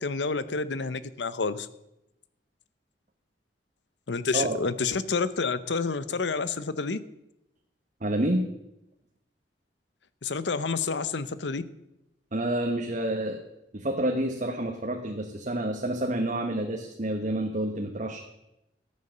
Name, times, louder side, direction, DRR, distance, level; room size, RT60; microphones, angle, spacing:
voice 1, 0.0-1.7 4.1-7.0 10.2-11.6, left 4 dB, 80° left, 15 dB, 0.8 m, -29 dB
voice 2, 8.0-8.5 12.3-13.4 13.7-18.2, right 1 dB, 45° right, 2 dB, 1.2 m, -28 dB
13.5 x 8.6 x 6.7 m, 0.87 s
head